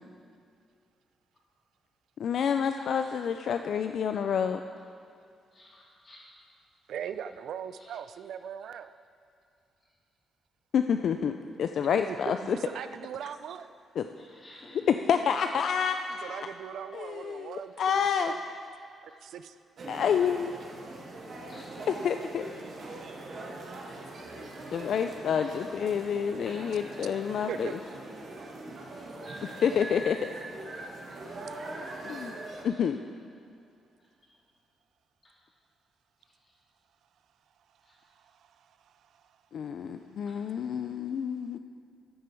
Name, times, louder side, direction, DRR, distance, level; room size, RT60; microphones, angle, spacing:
voice 1, 2.2-4.6 10.7-11.3 11.6-12.6 14.0-14.1 14.9-16.5 16.9-18.3 19.9-20.6 21.9-22.5 24.7-27.7 29.6-30.2 32.0-32.3 32.6-33.0 39.5-41.6, left 7 dB, 60° left, 7 dB, 0.3 m, -28 dB
voice 2, 2.7-3.1 5.5-6.2 7.8-8.0 14.1-14.9 19.1-19.2 21.3-21.7 24.4-24.5 26.4-26.6 29.0-29.6 30.7-30.9 31.4-31.6 36.2-36.3 37.8-38.0 40.2-40.4, left 1 dB, 30° left, -5 dB, 3.0 m, -54 dB
voice 3, 6.9-8.9 11.9-13.8 16.1-18.4 19.0-19.6 27.5-27.7 38.2-39.2, right 8 dB, 70° right, 11 dB, 0.3 m, -40 dB
sound 1, 19.8-32.6, right 2 dB, 50° right, 1.4 m, -42 dB
14.0 x 6.7 x 4.5 m, 2.4 s
cardioid pair, 140°, 0 cm